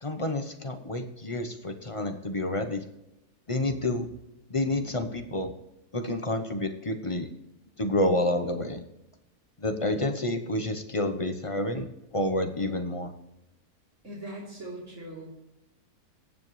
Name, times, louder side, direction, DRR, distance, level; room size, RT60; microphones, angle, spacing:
voice 1, 0.0-2.8 3.5-4.1 4.5-5.5 5.9-7.3 7.8-8.8 9.6-13.1, left 1 dB, 30° left, 6 dB, 0.7 m, -29 dB
voice 2, 14.0-15.2, right 1 dB, 45° right, -8 dB, 3.9 m, -40 dB
18.5 x 7.5 x 3.2 m, 0.93 s
omnidirectional pair, 1.7 m